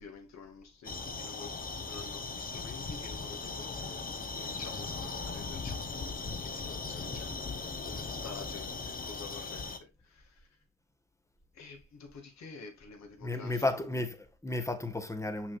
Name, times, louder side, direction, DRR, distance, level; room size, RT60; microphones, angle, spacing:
voice 1, 0.0-7.3 7.8-10.5 11.5-13.9, left 5 dB, 65° left, 2.3 m, -49 dB
sound 1, 0.8-9.8, left 4 dB, 30° left, 1.0 m, -38 dB
voice 2, 13.2-15.6, left 2 dB, 10° left, 1.2 m, -33 dB
6.4 x 6.0 x 2.5 m
cardioid pair, 90°, 30 cm